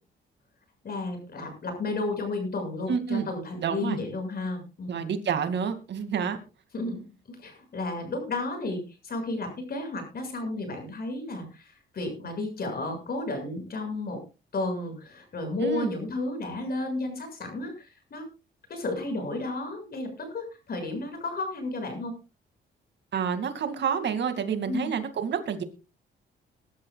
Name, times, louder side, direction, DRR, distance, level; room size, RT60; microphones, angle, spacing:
voice 1, 0.8-5.0 6.7-14.2 14.5-18.3 18.7-22.1 24.7-24.9, left 2 dB, 50° left, 5 dB, 6.7 m, -33 dB
voice 2, 2.9-3.3 3.6-4.0 4.9-6.4 15.6-15.9 23.1-25.6, right 7 dB, 60° right, 8 dB, 2.4 m, -28 dB
22.0 x 12.0 x 2.4 m, 0.30 s
cardioid pair, 90°, 20 cm